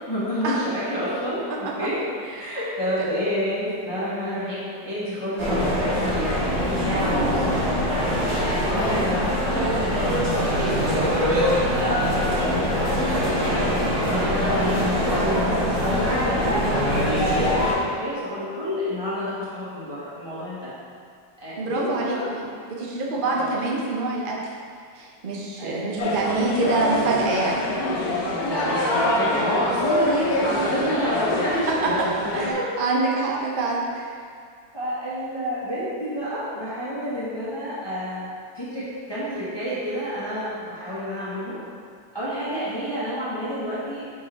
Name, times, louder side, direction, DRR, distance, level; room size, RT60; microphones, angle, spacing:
voice 1, 0.1-2.0 2.4-10.1 10.3-11.0 11.7-14.8 15.1-20.7 21.4-22.3 23.3-23.6 25.6-26.0 28.4-31.7 32.3-32.6 34.7-38.3 38.5-41.5 42.1-44.1, equal, 15° left, -11 dB, 1.2 m, -29 dB
sound 1, 5.4-17.7, equal, 70° right, 2.2 m, -23 dB
voice 2, 21.6-22.4 22.8-24.4 25.0-27.6 32.3-34.1, right 3 dB, 45° right, -3 dB, 0.7 m, -26 dB
sound 2, 26.0-32.5, left 2 dB, 60° left, 1.2 m, -25 dB
5.5 x 4.7 x 4.4 m, 2.2 s
omnidirectional pair, 2.0 m